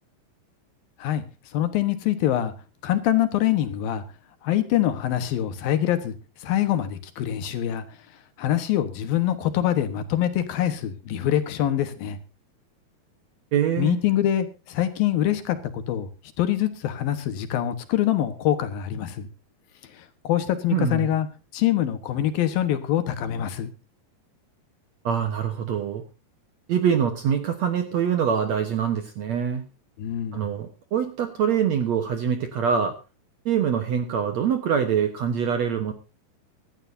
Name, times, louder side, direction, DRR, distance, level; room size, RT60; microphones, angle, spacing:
voice 1, 1.5-2.5 2.8-4.0 4.4-7.8 8.4-12.2 13.8-16.1 16.4-19.3 19.9-21.3 21.5-23.7 30.0-30.4, left 12 dB, 70° left, 10 dB, 2.9 m, -24 dB
voice 2, 13.5-14.0 20.7-21.1 25.0-26.0 26.7-29.6 30.3-33.0 33.5-35.9, right 8 dB, 65° right, 7 dB, 1.8 m, -24 dB
24.5 x 11.5 x 2.7 m, 0.29 s
omnidirectional pair, 4.5 m